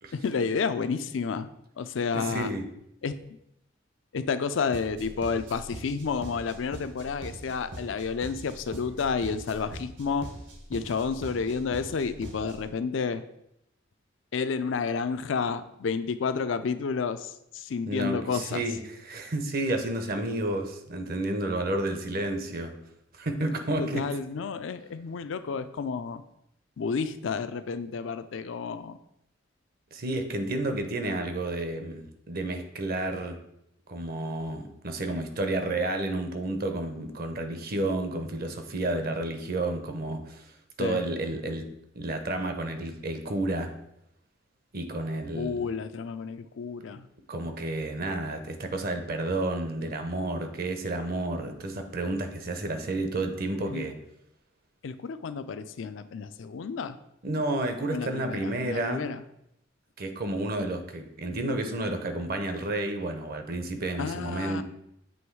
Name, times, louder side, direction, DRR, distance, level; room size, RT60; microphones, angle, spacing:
voice 1, 0.1-1.5 1.8-2.5 3.0-3.2 4.1-10.3 10.7-13.2 14.3-18.6 23.8-26.2 26.8-29.0 40.8-41.0 45.3-47.1 53.7-53.8 54.8-57.0 57.9-59.2 64.0-64.6, left 5 dB, 70° left, 12 dB, 0.4 m, -30 dB
voice 2, 2.1-2.6 17.9-18.8 19.0-22.7 23.1-24.0 29.9-33.4 33.9-40.5 40.8-41.7 41.9-43.7 44.7-45.6 47.3-53.9 57.2-59.1 60.0-64.6, right 2 dB, 50° right, 6 dB, 0.8 m, -31 dB
sound 1, 4.7-12.7, right 1 dB, 70° right, 1.2 m, -43 dB
7.8 x 3.1 x 4.6 m, 0.79 s
head